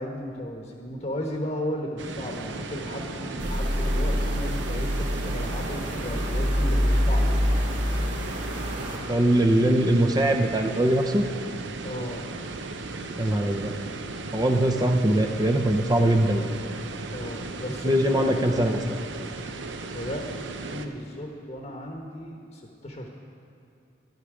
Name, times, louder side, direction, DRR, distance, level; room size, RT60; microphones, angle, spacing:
voice 1, 0.0-7.3 11.8-12.3 17.1-18.3 19.8-23.1, left 1 dB, 35° left, 2 dB, 1.0 m, -35 dB
sound 1, 2.0-20.9, right 3 dB, 70° right, 0.7 m, -36 dB
sound 2, 2.3-7.3, equal, 10° left, 0.8 m, -43 dB
sound 3, 3.4-9.0, equal, 40° right, 2.3 m, -26 dB
voice 2, 9.1-11.3 13.2-13.7 14.3-16.4 17.8-19.0, right 1 dB, 20° right, 5 dB, 0.6 m, -22 dB
13.5 x 11.0 x 5.0 m, 2.7 s
head